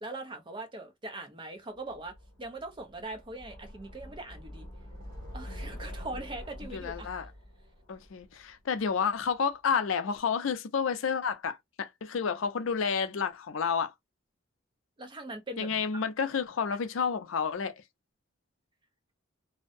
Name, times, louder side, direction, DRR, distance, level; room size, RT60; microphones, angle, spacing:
voice 1, 0.0-4.7 5.3-7.1 15.0-16.0, right 2 dB, 25° right, 0.5 m, -41 dB
sound 1, 1.9-9.0, equal, 45° right, 1.4 m, -45 dB
voice 2, 5.5-5.9 6.7-7.3 7.9-13.9 15.6-17.7, left 6 dB, 70° left, 0.4 m, -30 dB
2.6 x 2.1 x 2.4 m
head